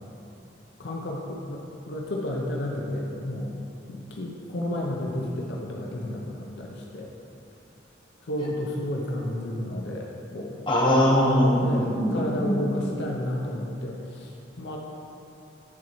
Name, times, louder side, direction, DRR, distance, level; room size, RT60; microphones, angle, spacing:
voice 1, 0.8-3.6 3.9-7.1 8.2-10.7 11.6-14.8, left 1 dB, 70° left, -2 dB, 0.6 m, -32 dB
voice 2, 10.7-12.9, equal, 25° left, -6 dB, 1.0 m, -22 dB
9.5 x 4.2 x 3.1 m, 2.7 s
head